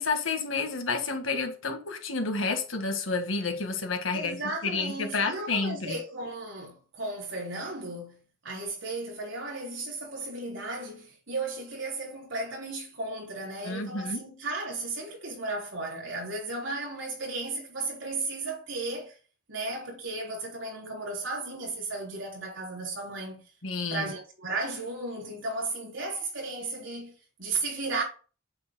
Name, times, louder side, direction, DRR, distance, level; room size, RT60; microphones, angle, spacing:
voice 1, 0.0-4.4 4.6-6.0 13.6-14.2 23.6-24.1, left 4 dB, 75° left, 1.8 m, -30 dB
voice 2, 4.1-19.2 19.5-23.4 23.9-28.0, right 3 dB, 65° right, 3.8 m, -35 dB
8.6 x 7.5 x 2.2 m
head